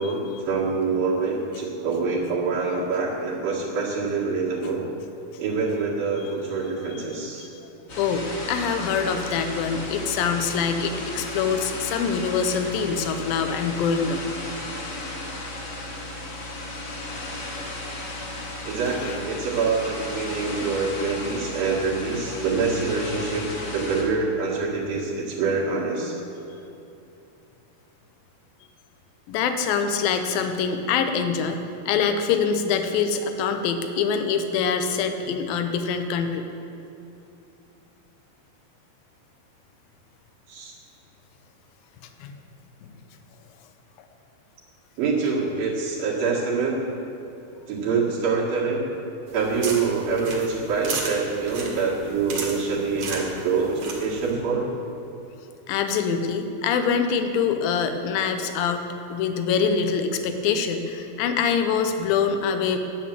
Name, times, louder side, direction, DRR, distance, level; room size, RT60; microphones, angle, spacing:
voice 1, 0.0-4.8 5.4-7.5 18.6-26.2 40.5-40.7 45.0-46.8 47.7-48.8 49.3-54.7, right 4 dB, 70° right, -5 dB, 3.5 m, -25 dB
voice 2, 7.4-7.7 8.0-14.2 18.9-19.2 29.3-36.4 42.2-42.3 55.7-62.8, left 6 dB, 75° left, 7 dB, 2.5 m, -25 dB
sound 1, 7.9-24.0, left 2 dB, 45° left, 2.5 m, -35 dB
sound 2, 49.3-54.3, right 4 dB, 55° right, 2.5 m, -35 dB
11.0 x 9.2 x 7.5 m, 2.9 s
omnidirectional pair, 4.3 m